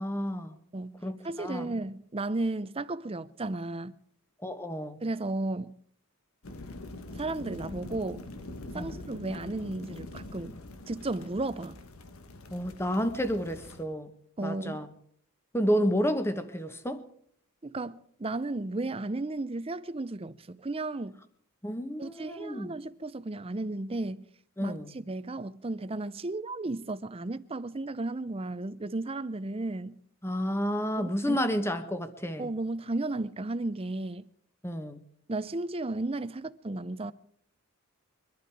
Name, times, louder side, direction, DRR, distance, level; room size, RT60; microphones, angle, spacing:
voice 1, 0.0-0.6 1.0-1.7 4.4-5.0 8.7-9.0 12.5-14.1 14.4-14.9 15.5-17.0 21.6-22.7 24.6-24.9 30.2-32.5 34.6-35.0, equal, 10° left, 1.1 m, -30 dB
voice 2, 0.7-4.0 5.0-5.8 7.1-8.3 8.7-10.6 10.9-11.8 14.4-14.9 17.6-21.2 22.0-24.3 24.6-30.0 31.0-31.6 32.4-34.3 35.3-37.1, right 2 dB, 25° right, 0.6 m, -34 dB
sound 1, 6.4-13.8, left 2 dB, 75° left, 1.3 m, -44 dB
23.5 x 12.0 x 4.8 m
head